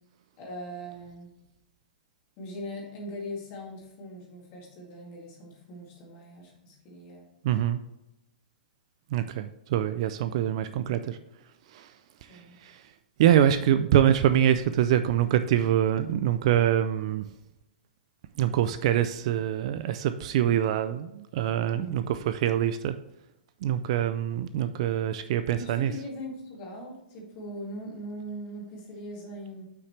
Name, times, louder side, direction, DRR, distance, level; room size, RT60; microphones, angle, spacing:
voice 1, 0.4-1.3 2.4-7.3 12.3-12.6 21.7-22.1 25.6-29.7, equal, 30° left, -2 dB, 2.2 m, -40 dB
voice 2, 7.4-7.8 9.1-11.2 11.7-11.9 12.2-12.8 13.2-17.3 18.4-23.0 23.6-25.9, right 10 dB, 40° right, 11 dB, 0.3 m, -25 dB
7.8 x 5.9 x 3.2 m, 0.89 s
hypercardioid pair, 170°, 5 cm